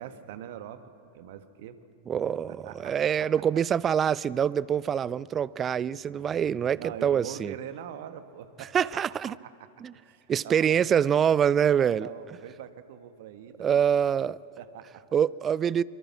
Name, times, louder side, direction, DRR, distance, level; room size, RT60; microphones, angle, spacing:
voice 1, 0.0-1.9 2.5-3.3 6.8-9.7 9.9-10.9 11.7-13.8 14.1-14.2 14.6-15.0, right 10 dB, 55° right, 1.5 m, -43 dB
voice 2, 2.1-7.5 8.7-9.3 9.8-9.9 10.3-12.1 13.6-14.4 15.1-15.8, right 8 dB, 25° right, 0.5 m, -25 dB
25.5 x 23.5 x 7.5 m
figure-of-eight pair, 90°, 0 cm